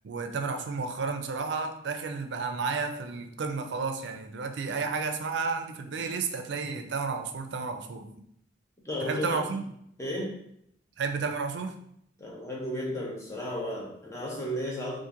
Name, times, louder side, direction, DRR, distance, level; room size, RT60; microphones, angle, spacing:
voice 1, 0.0-8.1 9.0-9.7 11.0-11.8, right 4 dB, 65° right, 6 dB, 0.4 m, -32 dB
voice 2, 8.8-9.4 10.0-10.4 12.2-15.0, equal, 15° left, -3 dB, 0.8 m, -34 dB
2.9 x 2.5 x 3.7 m, 0.71 s
head